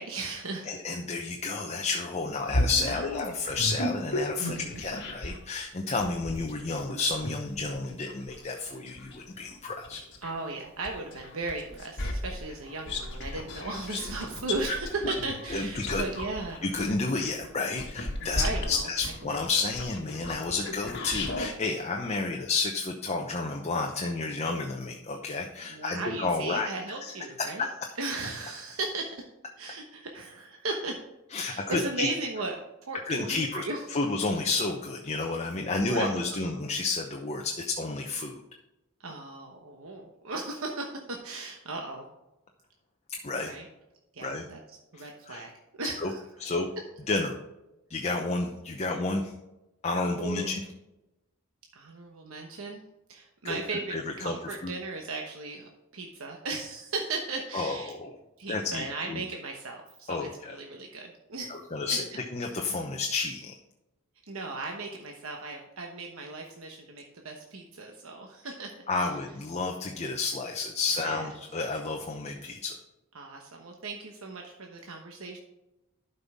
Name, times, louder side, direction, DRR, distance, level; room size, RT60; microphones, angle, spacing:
voice 1, 0.0-0.7 2.9-3.4 4.4-4.8 10.2-16.6 18.2-18.9 20.7-20.8 25.7-27.7 28.0-29.3 29.6-31.0 31.4-32.6 32.9-33.8 35.8-36.6 39.0-42.1 43.4-43.7 44.1-44.6 44.9-45.5 45.8-46.2 50.2-50.5 51.7-52.8 53.1-57.9 58.4-61.5 64.3-68.8 71.0-71.2 73.1-75.4, right 3 dB, 75° right, 1 dB, 1.1 m, -36 dB
voice 2, 0.7-10.0 15.5-16.3 16.6-26.7 27.0-27.1 27.4-27.9 31.3-32.1 33.0-38.4 43.1-43.5 44.2-44.5 44.9-45.4 46.0-46.1 46.4-46.7 47.1-47.3 47.9-49.3 49.8-50.6 53.4-54.3 54.6-54.7 57.5-58.2 58.5-59.2 60.1-60.6 61.5-63.5 68.9-72.8, left 3 dB, 30° left, 2 dB, 0.8 m, -31 dB
sound 1, 2.5-5.5 6.0-10.4 10.8-21.5, left 1 dB, 55° left, 1.7 m, -34 dB
12.0 x 5.5 x 3.6 m, 0.97 s
head